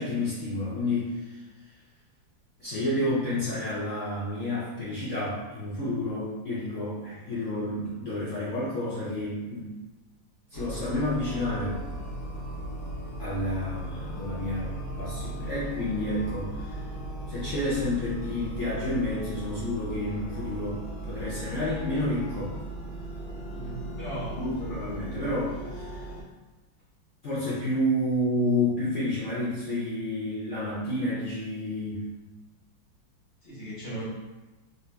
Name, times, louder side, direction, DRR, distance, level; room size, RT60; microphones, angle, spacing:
voice 1, 0.0-1.4 2.6-9.8 10.5-11.8 13.2-16.8 17.3-22.5 24.4-26.1 27.2-32.1 33.9-34.0, left 1 dB, 80° left, -9 dB, 0.6 m, -30 dB
sound 1, 10.5-26.2, right 1 dB, 65° left, 1.2 m, -37 dB
voice 2, 23.5-24.5 33.4-34.0, right 2 dB, 45° left, -8 dB, 1.1 m, -37 dB
3.3 x 2.7 x 2.2 m, 1.1 s
omnidirectional pair, 2.2 m